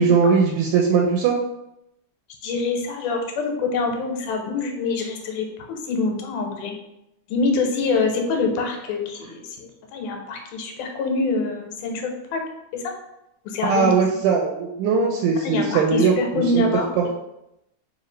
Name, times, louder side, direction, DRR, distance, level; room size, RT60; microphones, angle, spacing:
voice 1, 0.0-1.4 13.6-16.6 17.0-17.1, right 5 dB, 80° right, 0 dB, 2.0 m, -20 dB
voice 2, 2.4-6.7 7.3-12.4 12.7-12.9 13.5-13.9 15.4-16.9, left 3 dB, 90° left, 3 dB, 2.1 m, -25 dB
4.9 x 2.7 x 3.1 m, 0.86 s
omnidirectional pair, 3.6 m